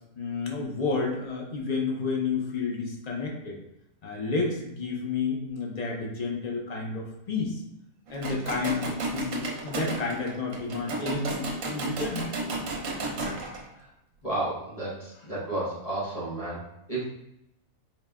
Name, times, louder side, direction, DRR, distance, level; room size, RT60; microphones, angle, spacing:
voice 1, 0.2-3.6 4.0-7.6 8.1-12.3, left 4 dB, 75° left, -2 dB, 0.3 m, -31 dB
sound 1, 8.1-13.6, right 2 dB, 60° right, 1.1 m, -33 dB
voice 2, 14.2-17.0, right 2 dB, 30° left, -6 dB, 0.8 m, -32 dB
4.6 x 2.1 x 3.4 m, 0.82 s
omnidirectional pair, 1.6 m